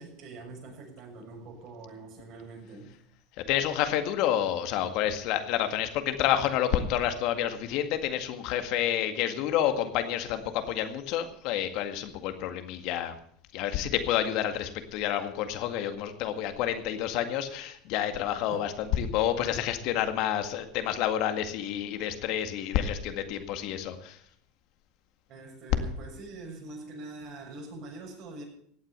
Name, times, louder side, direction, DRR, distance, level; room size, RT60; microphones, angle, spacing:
voice 1, 0.0-2.9 18.5-18.6 25.3-28.4, right 3 dB, 55° right, 0 dB, 6.7 m, -44 dB
voice 2, 3.5-13.2 13.5-24.2, left 10 dB, 60° left, 8 dB, 1.9 m, -29 dB
16.5 x 8.9 x 6.7 m, 0.66 s
hypercardioid pair, 100°, 0 cm